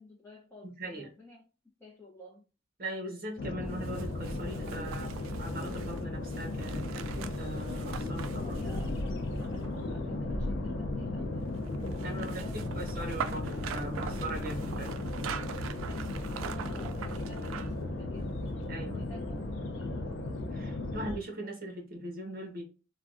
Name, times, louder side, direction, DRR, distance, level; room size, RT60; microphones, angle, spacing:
voice 1, 0.0-1.4 1.8-2.4 8.3-11.5 12.0-13.6 14.7-15.1 15.8-18.4 18.9-20.0, left 1 dB, 10° left, -5 dB, 0.7 m, -52 dB
voice 2, 0.6-1.1 2.8-8.6 11.7-11.8 12.0-14.9 18.7-19.0 20.5-22.6, right 1 dB, 50° right, 2 dB, 0.9 m, -40 dB
sound 1, 3.4-21.2, left 2 dB, 65° left, 0.5 m, -35 dB
sound 2, 3.7-9.9 11.5-17.8 18.2-18.3, right 7 dB, 90° right, 0.3 m, -43 dB
3.4 x 2.2 x 2.4 m, 0.34 s
head